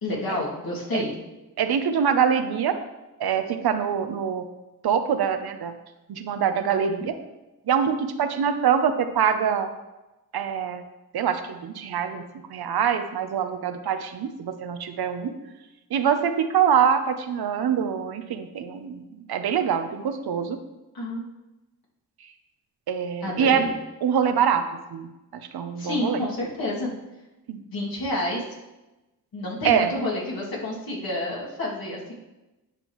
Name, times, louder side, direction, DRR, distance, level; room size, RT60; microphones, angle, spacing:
voice 1, 0.0-1.2 20.9-21.3 23.2-23.7 25.8-26.9 27.6-28.4 29.3-32.1, left 1 dB, 65° left, -5 dB, 2.4 m, -29 dB
voice 2, 1.6-2.7 3.2-4.5 4.8-5.7 6.1-7.1 7.7-9.7 10.3-10.8 11.1-12.2 12.5-15.3 15.9-20.6 22.9-23.7 24.0-24.6 24.9-26.2 27.5-27.6 29.6-29.9, right 7 dB, 75° right, 8 dB, 0.8 m, -24 dB
10.0 x 5.3 x 3.1 m, 1.0 s
cardioid pair, 50°, 38 cm